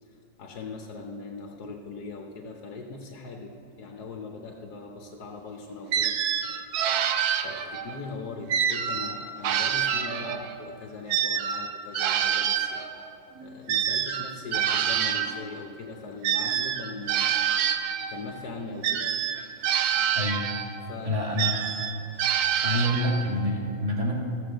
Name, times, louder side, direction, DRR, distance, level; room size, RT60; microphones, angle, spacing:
voice 1, 0.4-6.2 6.5-6.6 7.3-13.0 13.3-17.4 18.1-19.3 20.8-21.3, left 3 dB, 60° left, 2 dB, 1.2 m, -40 dB
sound 1, 5.9-7.9 8.5-10.6 11.1-15.4 16.2-18.2 18.8-20.8 21.4-23.4, right 9 dB, 70° right, 1.0 m, -27 dB
voice 2, 21.0-21.6 22.6-24.1, left 1 dB, 20° right, -2 dB, 1.7 m, -27 dB
14.5 x 6.9 x 7.6 m, 2.9 s
omnidirectional pair, 2.1 m